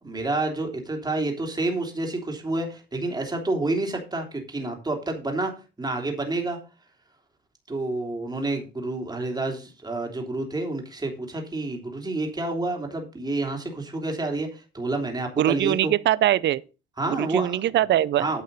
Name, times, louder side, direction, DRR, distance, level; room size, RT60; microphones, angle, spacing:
voice 1, 0.0-5.5 5.8-6.6 7.7-15.9 17.0-17.6 18.2-18.4, right 2 dB, 20° right, 3.1 m, -29 dB
voice 2, 15.4-16.6 17.0-18.3, right 12 dB, 65° right, 0.6 m, -22 dB
9.4 x 5.5 x 6.7 m
cardioid pair, 90°, 20 cm